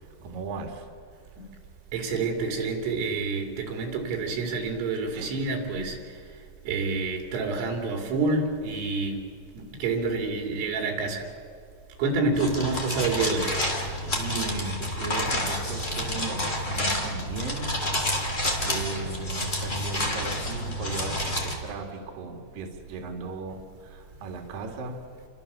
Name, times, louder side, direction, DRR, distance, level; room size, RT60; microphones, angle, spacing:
voice 1, 0.2-0.9 5.1-5.3 14.1-17.8 18.1-25.0, right 3 dB, 50° right, 3.7 m, -37 dB
voice 2, 1.9-9.3 9.5-11.3 12.0-13.6, right 3 dB, 80° right, 5.6 m, -28 dB
sound 1, 12.3-21.5, left 1 dB, 20° left, 2.2 m, -29 dB
30.0 x 24.5 x 7.0 m
omnidirectional pair, 5.8 m